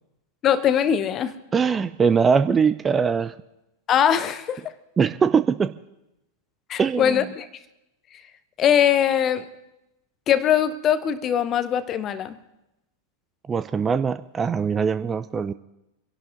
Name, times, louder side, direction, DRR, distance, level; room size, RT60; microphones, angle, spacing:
voice 1, 0.4-1.4 3.9-4.7 6.7-7.5 8.6-9.5 10.3-12.4, left 9 dB, 30° left, 14 dB, 0.9 m, -21 dB
voice 2, 1.5-3.3 5.0-5.7 6.8-7.2 13.5-15.5, right 6 dB, 20° right, 13 dB, 0.5 m, -21 dB
26.0 x 11.5 x 4.0 m, 0.91 s
figure-of-eight pair, 90°, 0 cm